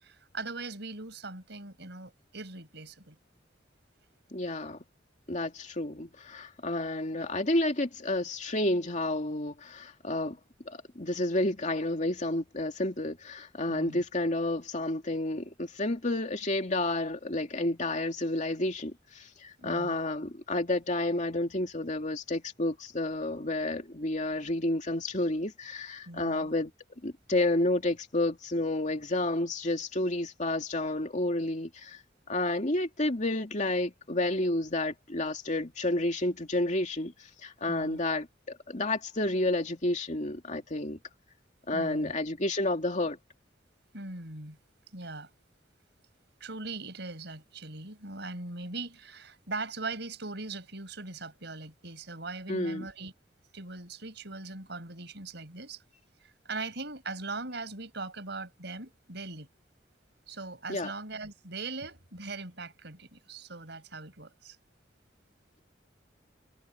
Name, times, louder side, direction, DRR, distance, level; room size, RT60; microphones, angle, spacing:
voice 1, 0.0-3.2 13.7-14.0 19.6-20.0 26.1-26.5 37.7-38.0 41.7-42.1 43.9-44.6 44.9-45.3 46.4-53.1 53.5-55.8 56.2-59.5 60.3-64.6, right 3 dB, 65° right, 6.2 m, -40 dB
voice 2, 4.3-4.8 5.3-10.4 10.7-26.7 27.0-32.0 32.3-37.1 37.4-41.0 41.7-43.2 52.5-52.9 60.7-60.9, left 2 dB, 40° left, 2.6 m, -30 dB
head